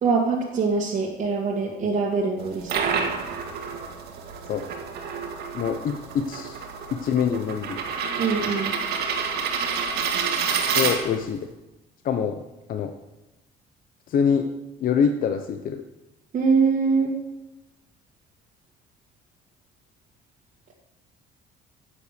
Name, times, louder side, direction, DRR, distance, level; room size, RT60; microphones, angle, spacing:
voice 1, 0.0-2.7 8.2-8.7 16.3-17.1, right 4 dB, 45° right, -4 dB, 2.0 m, -23 dB
sound 1, 2.4-11.4, right 6 dB, 75° right, 1.9 m, -28 dB
voice 2, 5.5-6.6 7.0-7.8 10.7-11.5 12.0-12.4 12.7-12.9 14.1-14.5 14.8-15.8, left 7 dB, 55° left, 7 dB, 0.8 m, -24 dB
10.0 x 8.4 x 6.8 m, 1.0 s
cardioid pair, 110°, 17 cm